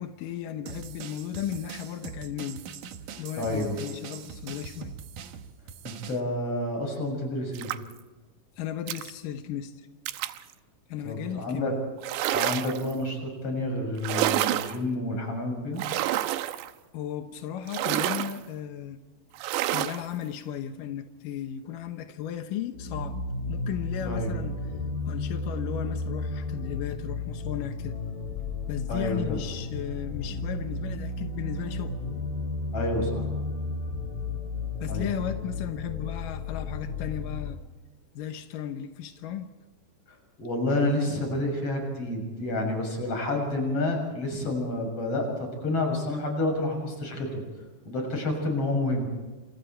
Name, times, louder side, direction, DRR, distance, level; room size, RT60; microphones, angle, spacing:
voice 1, 0.0-2.6 3.2-4.9 8.6-9.9 10.9-11.8 16.9-19.0 19.7-23.2 23.5-24.6 25.1-28.0 28.7-32.0 34.8-37.6 38.1-39.5, left 10 dB, 75° left, 7 dB, 2.0 m, -35 dB
sound 1, 0.7-6.2, right 7 dB, 60° right, 2.3 m, -42 dB
voice 2, 3.4-3.8 5.8-7.7 11.0-11.7 12.3-15.8 24.0-24.3 28.9-29.4 32.7-33.3 34.9-35.1 40.1-45.3 45.6-47.4 47.9-49.1, left 1 dB, 30° left, 2 dB, 7.7 m, -29 dB
sound 2, 7.5-8.0 8.9-9.1 10.1-10.4 12.0-12.9 14.0-14.8 15.8-16.7 17.7-18.4 19.4-20.0, right 14 dB, 80° right, 3.0 m, -28 dB
sound 3, 22.7-37.5, left 3 dB, 55° left, 5.2 m, -33 dB
29.0 x 28.0 x 4.6 m, 1.2 s
omnidirectional pair, 5.2 m